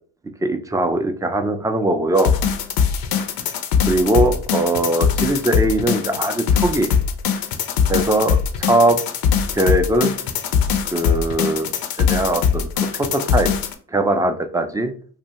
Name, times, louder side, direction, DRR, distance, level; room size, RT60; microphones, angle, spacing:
voice 1, 0.4-2.3 3.9-6.9 7.9-9.0 9.5-10.1 10.9-11.7 12.0-13.5 13.9-14.9, right 1 dB, 10° right, 6 dB, 0.3 m, -20 dB
sound 1, 2.2-13.7, left 7 dB, 55° left, 0.5 m, -21 dB
2.6 x 2.2 x 2.8 m, 0.43 s
hypercardioid pair, 50°, 43 cm